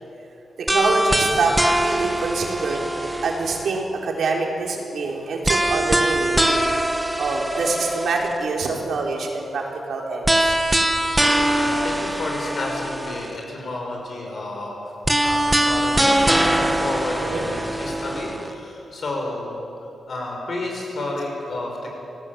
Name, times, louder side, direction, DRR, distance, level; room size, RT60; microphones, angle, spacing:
voice 1, 0.6-2.8 3.2-6.5 7.2-10.6 17.2-17.5, right 3 dB, 65° right, 0 dB, 4.2 m, -25 dB
sound 1, 0.7-3.8 5.4-8.4 10.2-13.4 15.0-18.5, right 1 dB, 5° right, 1.5 m, -22 dB
voice 2, 11.5-14.9 15.2-19.7 20.1-21.9, left 2 dB, 40° left, 0 dB, 6.3 m, -31 dB
28.0 x 18.5 x 8.9 m, 2.9 s
wide cardioid pair, 180°, 0 cm